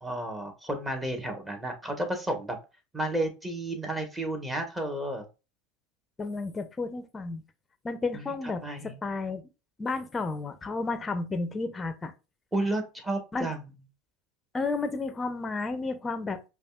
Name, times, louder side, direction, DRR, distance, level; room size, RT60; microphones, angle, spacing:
voice 1, 0.0-2.6 2.9-5.2 8.1-8.2 8.6-8.9 12.5-13.6, right 1 dB, 15° right, 1.4 m, -32 dB
voice 2, 6.2-7.4 7.8-9.4 9.8-12.1 13.3-13.5 14.5-16.5, left 3 dB, 20° left, 0.7 m, -32 dB
5.1 x 2.5 x 2.4 m
hypercardioid pair, 90°, 0 cm